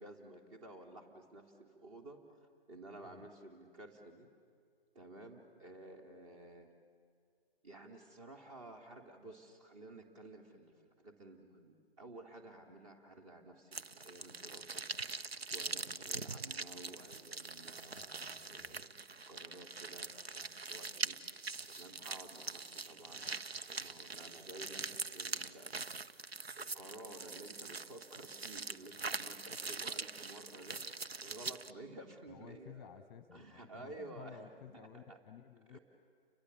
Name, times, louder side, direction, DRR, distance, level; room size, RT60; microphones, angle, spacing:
voice 1, 0.0-4.3 4.9-6.7 7.6-18.9 19.3-21.2 21.7-24.8 25.1-25.8 26.2-32.9 33.3-35.2 35.7-35.8, right 2 dB, 30° right, 3 dB, 3.1 m, -53 dB
sound 1, 13.7-31.7, right 4 dB, 80° right, 0.8 m, -43 dB
voice 2, 17.9-18.8 32.3-35.8, left 8 dB, 25° left, 11 dB, 1.0 m, -55 dB
30.0 x 24.0 x 7.2 m, 2.2 s
figure-of-eight pair, 130°, 30 cm